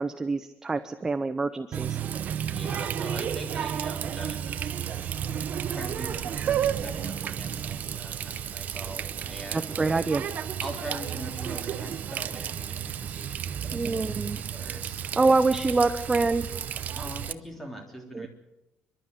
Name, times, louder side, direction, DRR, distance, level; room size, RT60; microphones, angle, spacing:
voice 1, 0.0-2.0 9.5-10.2 13.7-14.4 15.2-16.5 18.1-18.3, right 3 dB, 15° right, 10 dB, 0.7 m, -25 dB
Water tap faucet, 1.7-17.3, right 9 dB, 40° right, 0.7 m, -32 dB
voice 2, 2.5-4.8 5.7-9.8 10.6-14.0 14.3-15.1 16.9-18.3, right 1 dB, 5° left, 2 dB, 3.4 m, -42 dB
29.0 x 12.0 x 8.0 m, 0.96 s
cardioid pair, 160°, 4 cm